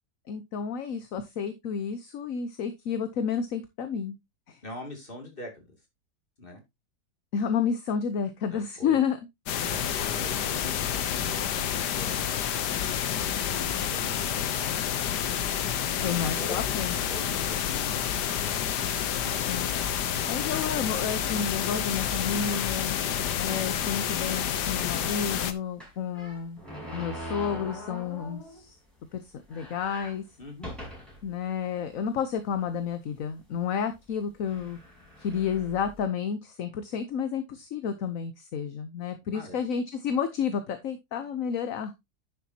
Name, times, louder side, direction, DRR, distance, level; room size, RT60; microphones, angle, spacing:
voice 1, 0.3-4.2 4.5-4.6 7.3-9.2 16.0-17.1 19.5-19.7 20.2-23.0 23.4-26.6 26.9-28.8 29.1-30.2 31.2-34.8 35.2-41.9, left 7 dB, 60° left, 10 dB, 1.2 m, -31 dB
voice 2, 4.6-5.8 6.4-6.6 8.5-9.0 9.6-12.3 13.4-14.9 16.3-16.8 17.1-18.1 19.2-19.5 30.4-30.7 39.3-39.6, left 1 dB, 30° left, 2 dB, 2.9 m, -43 dB
sound 1, 9.5-25.5, left 9 dB, 85° left, 1.5 m, -29 dB
sound 2, 22.3-23.2 23.7-23.8 24.1-24.2 25.8-28.7 29.1-29.2 29.4-31.3 31.9-32.0 32.9-33.2 34.0-34.1 34.5-36.0, equal, ahead, 5.5 m, -42 dB
10.0 x 7.3 x 2.8 m, 0.21 s
omnidirectional pair, 1.7 m